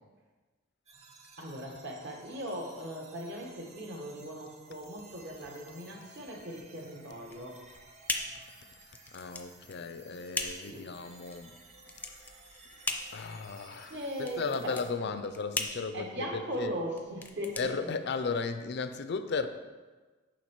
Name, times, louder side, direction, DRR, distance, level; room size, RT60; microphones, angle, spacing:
sound 1, 0.9-14.9, right 3 dB, 35° right, 0.8 m, -56 dB
voice 1, 1.4-7.6 10.7-10.9 13.9-14.7 15.9-17.9, equal, 60° right, 0 dB, 1.3 m, -39 dB
sound 2, 7.2-18.5, left 3 dB, 10° left, 0.5 m, -39 dB
voice 2, 9.1-11.6 12.1-12.3 12.7-12.8 13.1-16.7 17.6-19.5, left 4 dB, 60° left, 10 dB, 0.5 m, -35 dB
7.2 x 5.4 x 4.5 m, 1.3 s
head